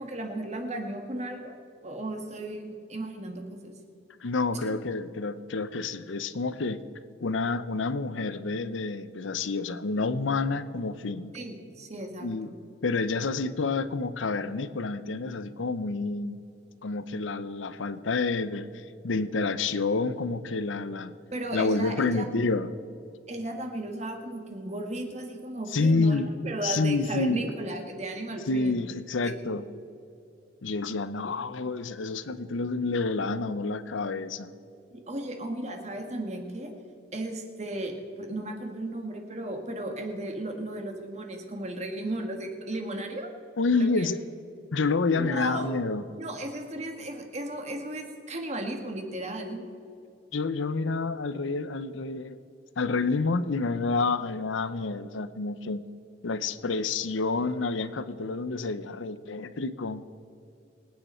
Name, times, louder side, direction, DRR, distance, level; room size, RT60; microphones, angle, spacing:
voice 1, 0.0-1.6 1.8-3.7 4.5-4.8 11.3-12.6 21.3-22.3 23.3-28.8 29.2-29.5 34.9-36.7 37.1-43.3 43.8-44.1 45.1-45.8 46.2-49.7, right 1 dB, 35° right, 4 dB, 1.6 m, -35 dB
voice 2, 4.2-6.8 7.2-11.3 12.2-12.5 12.8-16.4 16.8-21.1 21.5-22.7 25.7-26.3 26.6-27.5 28.5-29.7 30.6-34.5 43.6-44.2 44.7-46.1 50.3-52.4 52.8-55.9 56.2-60.0, left 3 dB, 85° left, 14 dB, 0.7 m, -28 dB
24.5 x 9.5 x 4.4 m, 2.7 s
head